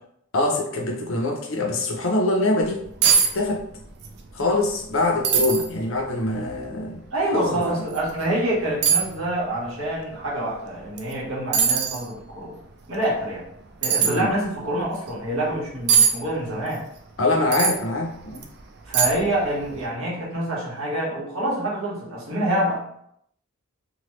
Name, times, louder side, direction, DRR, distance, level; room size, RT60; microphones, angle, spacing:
voice 1, 0.3-2.8 3.2-3.6 4.3-7.0 7.3-7.6 14.0-14.3 17.2-18.4, left 2 dB, 65° left, 1 dB, 0.6 m, -24 dB
sound 1, 2.7-2.8 3.0-3.3 3.6-4.1 4.5-4.6 5.2-5.7 6.3-6.4 7.9-8.0 8.8-9.1 11.0-11.1 11.5-12.0 13.8-14.1 15.9-16.1 17.5-17.8 18.4-18.5 18.9-19.3 19.6-19.8, right 7 dB, 50° right, 0.4 m, -20 dB
voice 2, 7.1-12.5 12.9-13.4 13.8-16.8 18.9-22.8, right 1 dB, 70° right, -5 dB, 1.2 m, -26 dB
3.0 x 2.2 x 3.1 m, 0.72 s
head